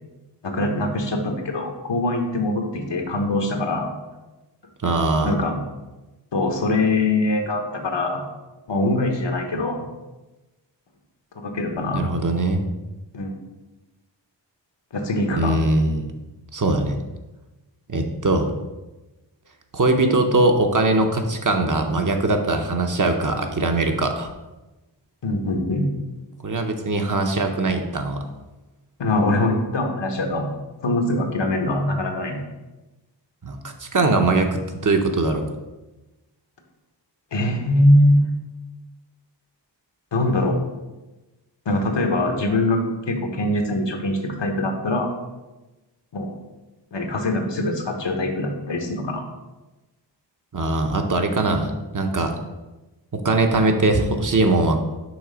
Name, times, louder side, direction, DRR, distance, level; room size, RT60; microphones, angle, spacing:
voice 1, 0.4-3.9 5.2-5.6 6.3-8.2 8.7-9.8 11.3-12.1 13.1-13.4 14.9-15.6 25.2-25.9 29.0-30.5 30.8-32.4 37.3-38.3 40.1-40.6 41.6-42.8 43.1-45.1 46.1-46.3 46.9-49.2, left 1 dB, 75° left, 3 dB, 1.1 m, -22 dB
voice 2, 4.8-5.4 11.9-12.6 15.3-16.1 16.5-17.0 17.9-18.5 19.7-24.3 26.4-28.3 33.4-35.5 50.5-52.4 53.1-54.8, right 2 dB, 45° right, 4 dB, 0.8 m, -21 dB
6.2 x 3.2 x 5.0 m, 1.1 s
wide cardioid pair, 55°, 44 cm